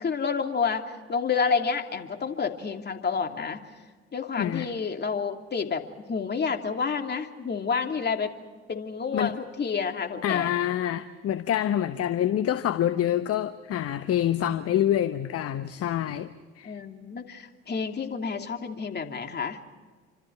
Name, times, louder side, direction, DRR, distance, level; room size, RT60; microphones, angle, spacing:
voice 1, 0.0-3.6 4.1-8.3 8.7-10.5 16.6-19.6, left 5 dB, 30° left, 2.8 m, -29 dB
voice 2, 4.4-4.7 9.1-9.3 10.2-16.3 16.6-16.8, left 11 dB, 45° left, 1.2 m, -26 dB
29.0 x 26.0 x 4.7 m
hypercardioid pair, 60°, 32 cm